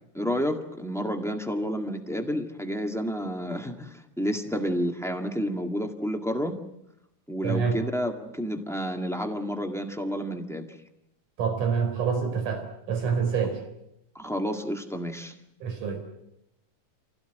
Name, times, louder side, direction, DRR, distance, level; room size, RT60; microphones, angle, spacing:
voice 1, 0.1-6.6 7.3-10.7 14.1-15.3, equal, ahead, 4 dB, 0.8 m, -30 dB
voice 2, 7.4-7.9 11.4-13.6 15.6-16.0, right 6 dB, 70° right, 6 dB, 5.5 m, -27 dB
27.5 x 16.5 x 9.2 m, 0.82 s
omnidirectional pair, 3.8 m